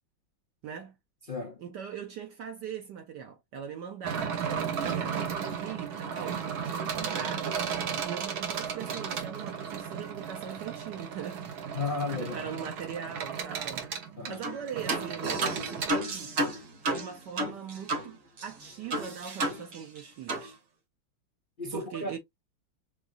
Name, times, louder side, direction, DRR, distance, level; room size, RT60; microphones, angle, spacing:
voice 1, 0.6-0.9 1.6-7.5 8.0-11.4 12.2-13.8 14.3-16.3 16.9-20.6 21.7-22.2, right 8 dB, 65° right, 1.3 m, -41 dB
voice 2, 1.3-1.6 11.7-12.5 14.2-14.4 21.6-22.2, left 3 dB, 75° left, 0.4 m, -34 dB
sound 1, 4.0-15.9, right 7 dB, 85° right, 2.0 m, -34 dB
sound 2, 14.4-14.6 14.9-18.1 18.4-18.5 18.9-20.0 20.3-20.5, right 2 dB, 45° right, 1.3 m, -31 dB
6.6 x 2.6 x 2.5 m
omnidirectional pair, 2.2 m